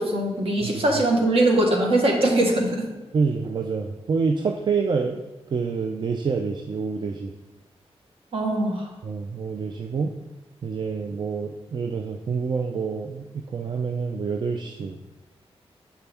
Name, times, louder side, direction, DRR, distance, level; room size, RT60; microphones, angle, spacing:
voice 1, 0.0-2.8 8.3-8.9, right 1 dB, 65° right, 0 dB, 1.4 m, -21 dB
voice 2, 3.1-5.2 5.5-7.3 9.0-10.1 10.6-15.0, right 5 dB, 45° right, 4 dB, 0.4 m, -27 dB
6.8 x 5.6 x 3.4 m, 1.1 s
wide cardioid pair, 140°, 11 cm